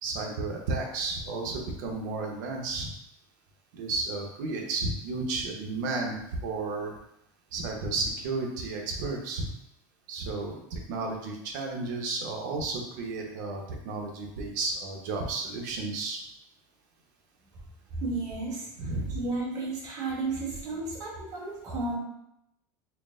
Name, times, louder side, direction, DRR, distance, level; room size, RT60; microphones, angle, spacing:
voice 1, 0.0-2.9 3.7-6.9 7.5-9.5 10.1-16.2 18.8-19.2, right 3 dB, 80° right, 1 dB, 0.9 m, -32 dB
voice 2, 17.9-22.0, right 3 dB, 35° right, -4 dB, 1.3 m, -33 dB
4.5 x 2.1 x 3.6 m, 0.80 s
supercardioid pair, 150°, 10 cm